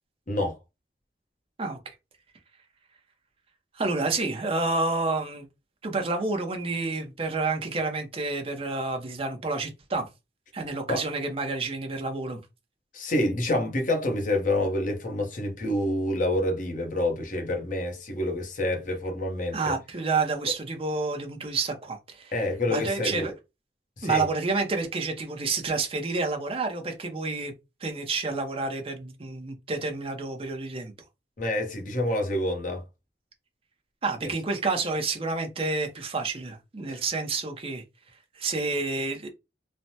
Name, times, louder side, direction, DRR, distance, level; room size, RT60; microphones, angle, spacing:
voice 1, 0.3-0.6 10.9-11.0 12.9-19.8 20.4-20.5 22.3-23.3 24.0-24.3 31.4-32.8 36.9-37.0, left 1 dB, 50° left, 0.8 m, -27 dB
voice 2, 1.6-1.9 3.7-5.5 5.8-10.1 10.5-12.4 19.5-22.3 22.7-23.3 24.0-27.5 27.8-30.9 34.0-37.8 38.3-39.3, right 3 dB, 35° right, 0.6 m, -29 dB
3.2 x 2.1 x 2.7 m
head